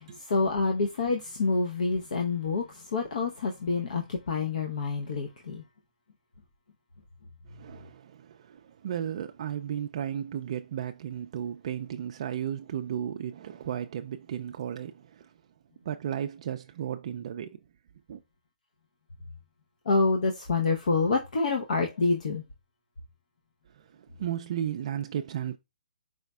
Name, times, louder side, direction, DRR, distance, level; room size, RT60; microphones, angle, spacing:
voice 1, 0.0-5.6 19.9-22.4, left 3 dB, 65° left, 0.8 m, -27 dB
voice 2, 7.5-15.3 15.9-17.6 18.1-18.2 23.7-25.6, right 9 dB, 45° right, 0.3 m, -34 dB
4.8 x 4.1 x 2.2 m
hypercardioid pair, 165°, 5 cm